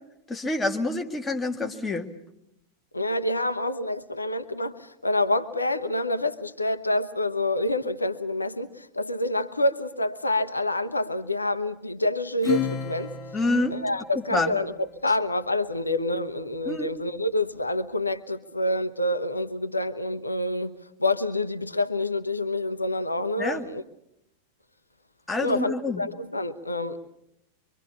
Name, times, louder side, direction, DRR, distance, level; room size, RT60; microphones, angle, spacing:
voice 1, 0.3-2.1 13.3-13.8 14.2-14.6 16.7-16.9 23.4-23.7 25.3-26.0, left 2 dB, 10° left, 3 dB, 2.1 m, -27 dB
voice 2, 2.9-13.1 13.7-14.7 15.0-20.7 21.0-23.8 25.4-27.1, left 1 dB, 80° left, 11 dB, 0.9 m, -27 dB
Acoustic guitar / Strum, 12.4-15.3, left 9 dB, 30° left, 1.8 m, -33 dB
25.0 x 24.5 x 7.0 m, 0.81 s
figure-of-eight pair, 90°, 0 cm